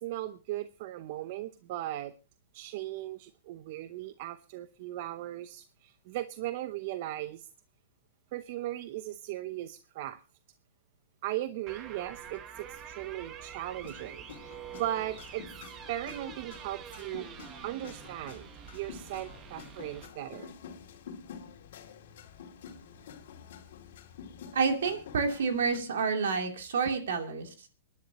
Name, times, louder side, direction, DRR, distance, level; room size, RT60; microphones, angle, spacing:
voice 1, 0.0-2.1 2.5-7.5 8.3-10.2 11.2-15.4 15.9-17.3 17.6-20.5, right 14 dB, 50° right, 12 dB, 0.7 m, -38 dB
sound 1, 11.7-20.1, right 8 dB, 25° right, 1.2 m, -46 dB
sound 2, 13.8-25.8, left 7 dB, 60° left, 2.3 m, -49 dB
voice 2, 24.5-27.5, right 5 dB, 75° right, 5 dB, 2.9 m, -29 dB
27.0 x 10.5 x 2.9 m, 0.32 s
hypercardioid pair, 140°, 0 cm